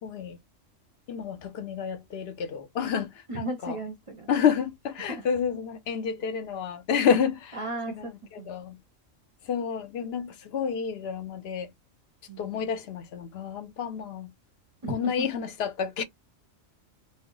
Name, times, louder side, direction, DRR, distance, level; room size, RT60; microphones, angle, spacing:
voice 1, 0.0-0.4 1.1-3.8 4.3-7.6 7.9-8.8 9.5-11.7 12.4-14.3 14.9-16.0, left 7 dB, 60° left, 0.7 m, -29 dB
voice 2, 3.3-4.3 5.1-5.4 7.5-8.5 12.3-12.7 14.8-15.4, right 1 dB, 40° right, 0.5 m, -36 dB
2.3 x 2.0 x 3.7 m
omnidirectional pair, 1.4 m